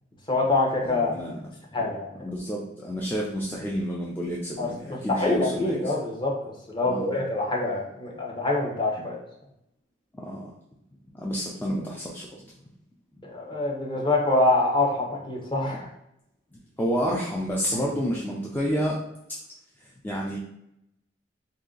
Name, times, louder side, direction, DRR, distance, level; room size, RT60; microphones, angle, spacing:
voice 1, 0.3-1.2 1.7-2.1 4.6-9.2 13.2-15.9, left 2 dB, 25° left, -2 dB, 0.8 m, -25 dB
voice 2, 0.8-1.4 2.1-5.9 6.8-7.2 10.1-10.5 11.1-12.3 16.8-19.0 20.0-20.4, equal, 10° left, -4 dB, 0.4 m, -29 dB
3.2 x 2.7 x 3.8 m, 0.80 s
head